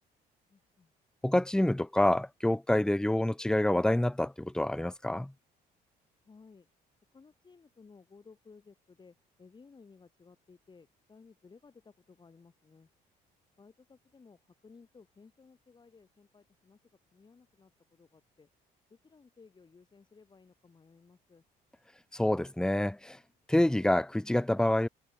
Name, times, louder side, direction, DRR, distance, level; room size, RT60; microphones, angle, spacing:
voice 1, 0.5-0.9 6.3-6.7 7.1-12.9 13.6-16.8 17.1-18.5 18.9-21.4, left 4 dB, 25° left, 6.6 m, -58 dB
voice 2, 1.2-5.3 22.1-23.2 23.5-24.9, left 1 dB, 5° left, 1.1 m, -27 dB
cardioid pair, 110°, 17 cm